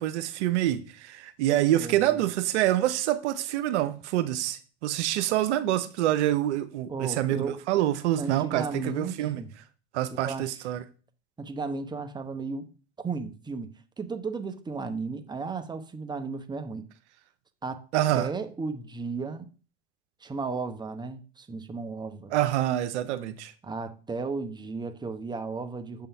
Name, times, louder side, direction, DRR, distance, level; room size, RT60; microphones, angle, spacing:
voice 1, 0.0-9.4 9.9-10.8 17.9-18.3 22.3-23.5, right 13 dB, 80° right, 0.7 m, -26 dB
voice 2, 1.8-2.1 6.9-7.6 8.2-9.5 10.1-10.5 11.4-12.7 13.0-16.8 17.6-17.9 18.1-19.5 20.2-22.3 23.6-26.1, right 4 dB, 10° right, 0.8 m, -34 dB
6.9 x 3.8 x 5.5 m
hypercardioid pair, 90°, 34 cm